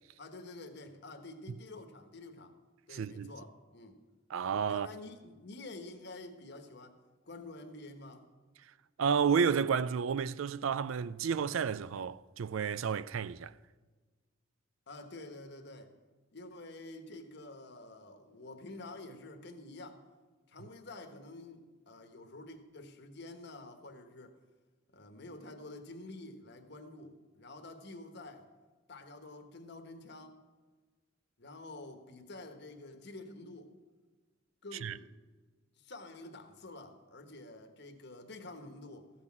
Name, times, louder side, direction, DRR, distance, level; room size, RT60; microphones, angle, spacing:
voice 1, 0.2-2.6 2.9-4.0 4.7-7.0 7.2-8.3 14.9-16.0 16.3-20.0 20.5-24.4 24.9-28.5 28.9-30.4 31.4-33.7 34.6-35.1 35.8-39.1, left 2 dB, 55° left, 1.3 m, -48 dB
voice 2, 2.9-3.3 4.3-4.9 9.0-13.5 34.8-35.0, right 6 dB, 90° right, 0.4 m, -31 dB
15.0 x 6.1 x 7.4 m
head